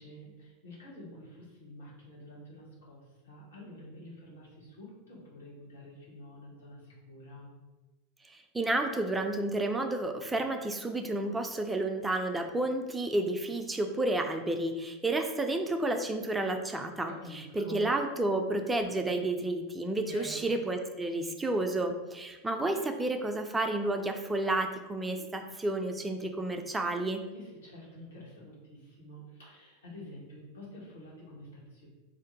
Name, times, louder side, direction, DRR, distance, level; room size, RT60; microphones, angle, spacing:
voice 1, 0.0-7.5 17.0-17.9 20.1-20.5 27.3-31.9, left 1 dB, 70° left, -5 dB, 1.1 m, -48 dB
voice 2, 8.3-17.1 17.5-27.2, right 2 dB, 10° right, 5 dB, 0.3 m, -31 dB
2.5 x 2.1 x 3.9 m, 1.1 s
figure-of-eight pair, 85°, 0 cm